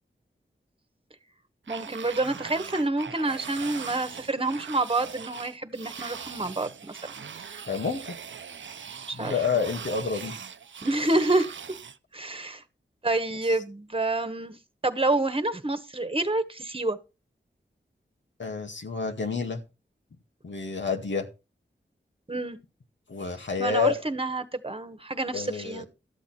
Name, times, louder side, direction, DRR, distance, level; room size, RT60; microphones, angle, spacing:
voice 1, 1.7-7.1 9.1-9.4 10.8-11.5 12.1-12.6 13.0-14.5 14.8-17.0 22.3-22.6 23.6-25.8, right 2 dB, 30° right, 1.4 m, -28 dB
sound 1, 1.7-12.0, right 7 dB, 90° right, 0.6 m, -40 dB
voice 2, 7.7-8.2 9.1-10.3 18.4-19.6 20.4-21.3 23.1-24.0 25.3-25.8, left 5 dB, 80° left, 2.0 m, -29 dB
13.0 x 8.3 x 4.4 m
wide cardioid pair, 60°, 19 cm